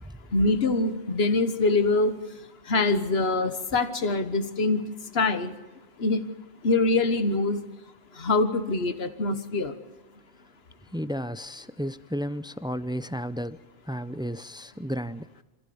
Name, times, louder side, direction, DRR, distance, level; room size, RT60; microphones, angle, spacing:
voice 1, 0.3-2.1 2.7-4.8 5.1-5.5 6.0-6.2 6.6-7.6 8.2-9.7, left 3 dB, 80° left, 10 dB, 1.6 m, -24 dB
voice 2, 10.9-13.6 13.9-15.4, equal, 5° right, 14 dB, 0.4 m, -33 dB
25.5 x 15.0 x 7.0 m, 1.2 s
omnidirectional pair, 1.0 m